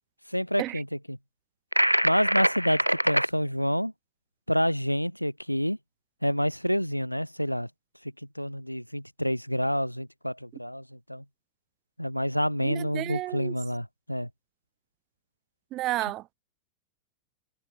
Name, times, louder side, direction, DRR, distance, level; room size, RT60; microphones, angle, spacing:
voice 1, 0.3-1.2 2.0-3.9 4.5-5.8 6.2-7.7 8.4-11.2 12.0-14.3, equal, 90° left, 2.4 m, -28 dB
sound 1, 1.7-3.3, equal, 90° right, 1.2 m, -24 dB
voice 2, 12.6-13.5 15.7-16.3, right 16 dB, 35° right, 1.0 m, -32 dB
figure-of-eight pair, 90°, 0 cm